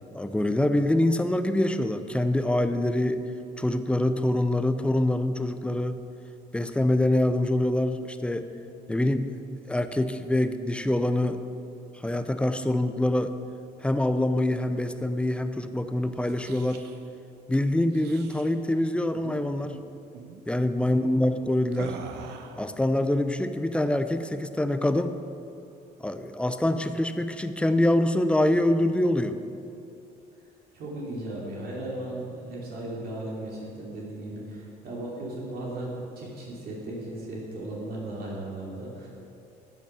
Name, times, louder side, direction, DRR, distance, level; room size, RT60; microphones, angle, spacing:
voice 1, 0.1-3.2 3.6-6.0 6.5-8.5 8.9-9.3 9.7-11.4 12.0-13.3 13.8-16.8 17.5-19.8 20.5-22.0 22.6-25.2 26.0-29.4, left 1 dB, 5° left, 9 dB, 0.6 m, -25 dB
sound 1, 16.1-17.0 17.9-18.5 19.1-19.4 19.6-19.8 20.1-20.4 21.7-22.7, right 6 dB, 80° right, 1.0 m, -42 dB
voice 2, 30.7-39.1, right 1 dB, 65° right, -4 dB, 2.8 m, -36 dB
12.0 x 8.0 x 5.7 m, 2.7 s
cardioid pair, 110°, 17 cm